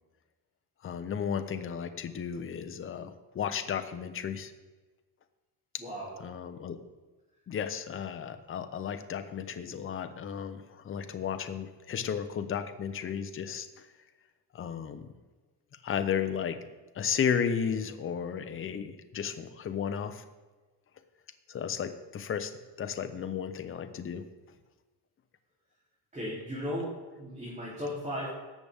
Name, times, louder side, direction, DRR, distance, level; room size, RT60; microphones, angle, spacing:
voice 1, 0.8-4.5 6.2-6.8 7.5-13.7 14.5-15.1 15.8-16.6 17.0-20.2 21.5-22.5 22.8-24.2, left 7 dB, 30° left, 8 dB, 0.7 m, -34 dB
voice 2, 5.8-6.1 26.1-26.9 27.2-28.3, equal, 15° right, -8 dB, 3.3 m, -36 dB
17.5 x 6.9 x 3.6 m, 1.3 s
cardioid pair, 160°, 41 cm